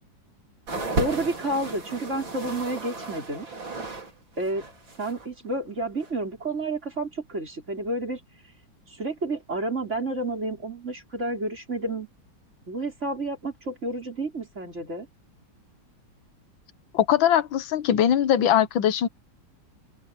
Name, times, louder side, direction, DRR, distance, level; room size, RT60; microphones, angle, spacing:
sound 1, 0.7-4.1 4.4-5.3 6.0-6.1, right 2 dB, 80° right, 5.0 m, -33 dB
voice 1, 1.0-3.5 4.4-4.6 5.0-8.2 9.0-12.1 12.7-15.1, right 2 dB, 35° right, 5.4 m, -30 dB
voice 2, 16.9-19.1, left 10 dB, 80° left, 1.7 m, -21 dB
omnidirectional pair, 2.1 m